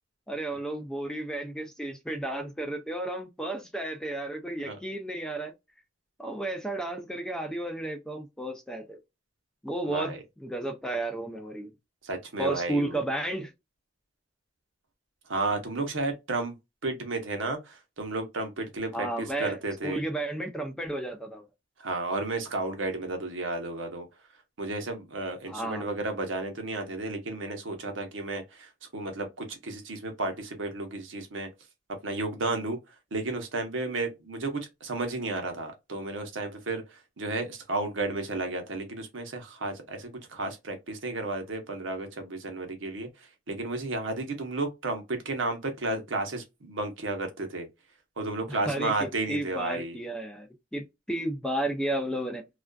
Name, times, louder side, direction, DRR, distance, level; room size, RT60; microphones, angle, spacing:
voice 1, 0.3-5.5 6.2-9.0 9.6-11.7 12.4-13.5 18.9-21.5 25.5-25.9 48.5-52.5, right 1 dB, 5° left, 0.4 m, -33 dB
voice 2, 9.8-10.2 12.0-13.0 15.3-16.5 16.8-20.0 21.8-24.1 24.6-31.5 32.0-32.8 33.1-43.1 43.5-47.7 48.2-50.0, right 2 dB, 85° right, 0.8 m, -32 dB
2.4 x 2.3 x 2.2 m
head